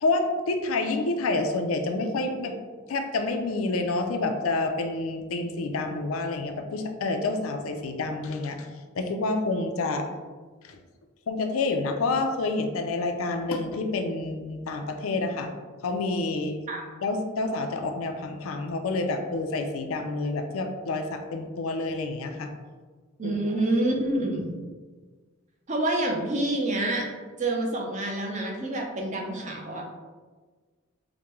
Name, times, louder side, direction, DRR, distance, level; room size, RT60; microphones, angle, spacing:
voice 1, 0.0-2.6 2.9-8.7 9.0-10.1 10.7-10.8 11.3-15.5 15.8-16.6 17.0-22.5 23.2-23.4, left 3 dB, 80° left, 6 dB, 0.4 m, -28 dB
voice 2, 23.2-24.6 25.7-27.1 27.4-29.8, right 1 dB, 35° right, 0 dB, 0.6 m, -27 dB
4.9 x 2.2 x 2.9 m, 1.4 s
head